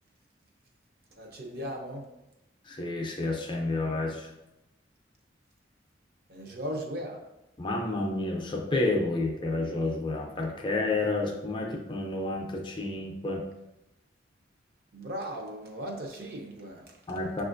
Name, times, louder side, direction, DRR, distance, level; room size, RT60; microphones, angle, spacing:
voice 1, 1.2-2.1 6.3-7.2 14.9-17.0, equal, 50° right, 1 dB, 0.6 m, -37 dB
voice 2, 2.7-4.3 7.6-13.4 17.1-17.4, left 2 dB, 25° left, 0 dB, 0.4 m, -30 dB
6.3 x 2.4 x 2.5 m, 0.91 s
head